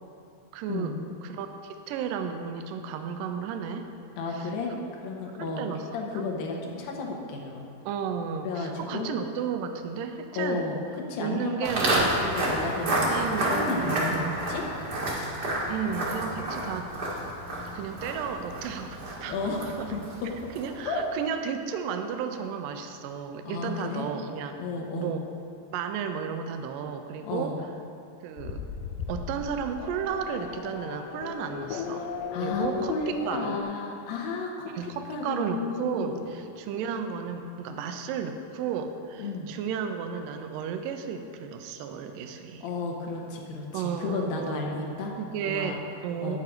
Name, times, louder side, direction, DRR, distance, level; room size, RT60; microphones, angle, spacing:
voice 1, 0.5-0.9 1.2-3.9 4.3-4.5 5.6-5.8 6.1-6.2 7.9-10.7 11.2-12.1 13.1-14.5 15.7-16.9 17.7-20.0 20.6-24.6 25.0-25.2 25.7-27.5 28.2-28.6 29.1-32.1 32.4-33.6 34.7-42.7 43.7-44.7 45.2-46.4, right 7 dB, 80° right, 7 dB, 2.1 m, -33 dB
voice 2, 4.2-7.6 8.4-9.1 10.4-11.7 12.2-14.7 19.2-19.7 20.2-20.5 20.9-21.1 23.4-24.1 24.6-25.2 27.2-27.6 32.3-36.3 39.2-39.5 42.6-45.1 45.4-45.8 46.2-46.4, left 3 dB, 70° left, -1 dB, 2.7 m, -33 dB
Walk footsteps, 11.6-20.9, right 1 dB, 50° right, 1.2 m, -30 dB
Race car auto racing / Accelerating revving vroom, 28.4-33.6, left 6 dB, 90° left, 1.9 m, -36 dB
9.5 x 8.3 x 5.1 m, 2.6 s
omnidirectional pair, 4.4 m